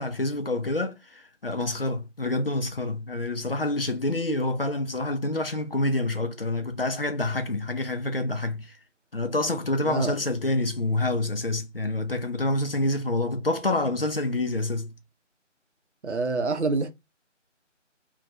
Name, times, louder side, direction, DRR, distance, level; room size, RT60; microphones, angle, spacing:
voice 1, 0.0-8.7 9.1-14.9, left 2 dB, 50° left, 0.5 m, -27 dB
voice 2, 9.8-10.2 16.0-16.9, right 3 dB, 65° right, 0.6 m, -26 dB
2.3 x 2.2 x 3.9 m
figure-of-eight pair, 165°, 37 cm